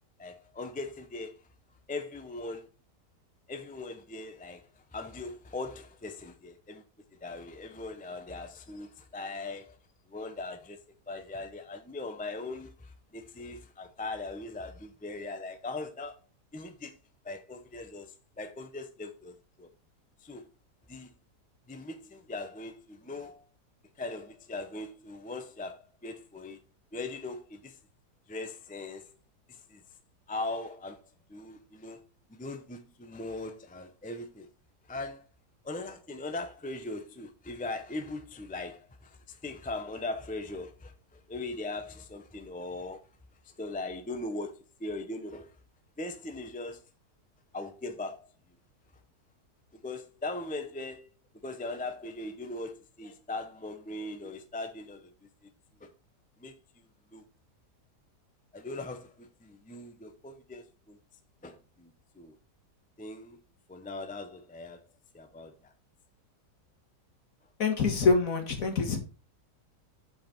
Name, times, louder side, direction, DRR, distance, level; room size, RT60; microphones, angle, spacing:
voice 1, 0.2-1.4 1.9-2.7 3.5-4.6 4.9-6.8 7.2-9.8 10.1-16.2 16.5-17.0 17.2-19.7 20.2-20.5 20.9-21.1 21.7-23.4 24.0-26.6 26.9-27.8 28.3-29.1 29.5-29.8 30.3-32.0 32.3-34.5 34.9-35.3 35.6-43.0 43.4-45.5 46.0-46.8 47.5-48.3 49.7-51.1 51.4-55.1 55.4-55.5 55.8-55.9 56.4-56.5 57.1-57.2 58.5-61.0 61.4-62.4 63.0-63.4 63.7-64.8 65.1-65.7, left 2 dB, 15° left, 0.3 m, -40 dB
voice 2, 67.6-69.0, left 4 dB, 55° left, 1.9 m, -25 dB
7.9 x 5.2 x 4.4 m
omnidirectional pair, 1.8 m